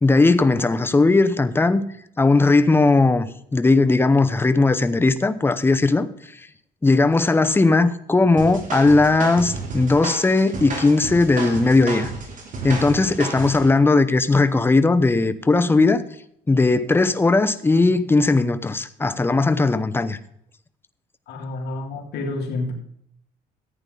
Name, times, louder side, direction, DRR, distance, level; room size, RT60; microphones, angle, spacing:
voice 1, 0.0-1.8 2.2-6.1 6.8-12.1 12.6-16.0 16.5-20.2, left 3 dB, 15° left, 0.8 m, -18 dB
sound 1, 8.4-13.7, right 3 dB, 50° right, 3.3 m, -32 dB
voice 2, 21.3-22.7, left 2 dB, 75° left, 2.7 m, -29 dB
14.5 x 9.0 x 3.9 m
cardioid pair, 110°, 17 cm